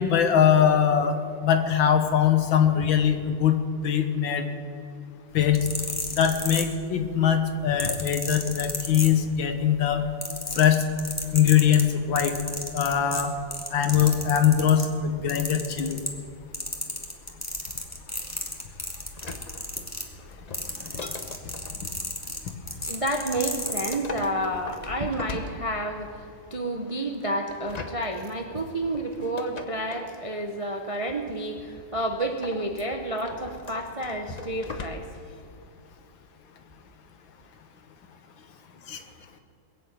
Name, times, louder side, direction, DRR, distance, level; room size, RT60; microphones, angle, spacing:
voice 1, 0.0-3.6 3.8-4.4 5.3-5.6 6.2-10.0 10.6-10.8 11.3-12.3 12.7-13.3 13.7-16.0 20.8-20.9 38.9-39.0, left 9 dB, 85° left, 7 dB, 1.9 m, -22 dB
sound 1, 5.4-7.1 7.8-9.5 9.9-14.9 15.3-16.3 16.5-24.0 24.7-24.9, left 1 dB, 10° left, 1.4 m, -33 dB
sound 2, 19.1-21.8 23.4-26.1 27.5-30.2 32.2-35.3 35.6-35.7, left 3 dB, 40° left, 0.6 m, -40 dB
voice 2, 22.9-35.1, right 1 dB, 35° right, 4 dB, 0.5 m, -30 dB
21.0 x 7.2 x 8.8 m, 2.5 s
omnidirectional pair, 2.1 m